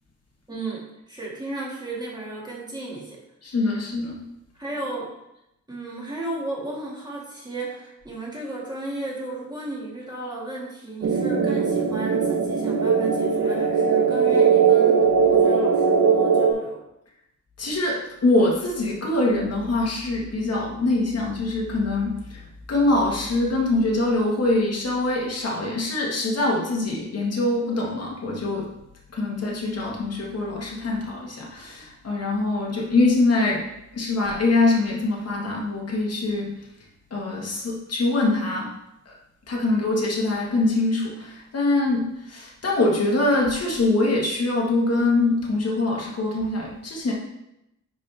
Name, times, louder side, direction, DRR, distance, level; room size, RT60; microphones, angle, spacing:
voice 1, 0.5-3.2 4.6-5.1 5.7-16.8, right 2 dB, 15° right, -5 dB, 1.9 m, -34 dB
voice 2, 3.4-4.2 17.6-28.7 29.1-33.7 33.9-36.7 37.1-38.7 39.0-39.1 39.5-47.1, left 2 dB, 50° left, -2 dB, 1.5 m, -24 dB
sound 1, 11.0-16.5, right 6 dB, 55° right, 1.0 m, -19 dB
9.9 x 5.2 x 3.4 m, 0.86 s
wide cardioid pair, 165°, 31 cm